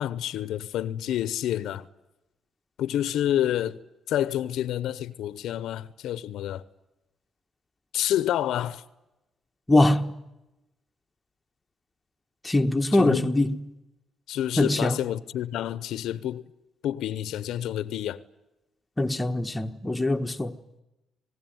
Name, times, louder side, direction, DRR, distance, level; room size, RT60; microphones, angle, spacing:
voice 1, 0.0-1.9 2.8-3.8 4.1-6.6 7.9-8.8 12.9-13.3 14.3-16.4 16.8-18.2, left 11 dB, 80° left, 0.8 m, -28 dB
voice 2, 9.7-10.2 12.4-13.6 14.6-15.0 19.0-20.6, left 2 dB, 15° left, 1.4 m, -22 dB
27.0 x 19.5 x 9.3 m
cardioid pair, 90°, 0 cm